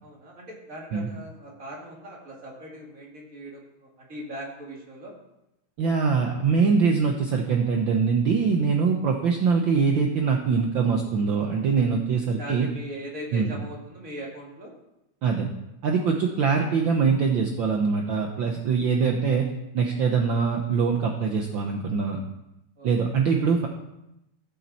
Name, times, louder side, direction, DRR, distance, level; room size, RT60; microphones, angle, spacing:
voice 1, 0.0-5.1 12.4-14.7 22.8-22.9, equal, 30° right, -2 dB, 2.5 m, -40 dB
voice 2, 5.8-12.7 13.3-13.5 15.2-15.5 15.8-19.5 19.7-22.2 22.8-23.7, right 5 dB, 80° right, 2 dB, 1.1 m, -23 dB
15.0 x 7.4 x 4.1 m, 0.88 s
omnidirectional pair, 3.3 m